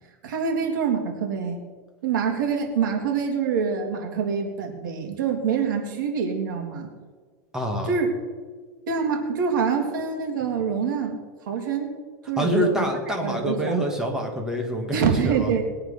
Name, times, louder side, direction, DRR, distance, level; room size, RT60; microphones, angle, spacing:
voice 1, 0.2-1.6 2.0-6.9 7.8-8.1 8.9-11.9 12.3-12.9 13.2-13.9 14.9-15.6, right 6 dB, 90° right, 2 dB, 3.3 m, -25 dB
voice 2, 7.5-7.9 12.4-15.5, equal, 5° right, 1 dB, 2.1 m, -26 dB
21.0 x 8.9 x 5.7 m, 1.5 s
supercardioid pair, 165°, 10 cm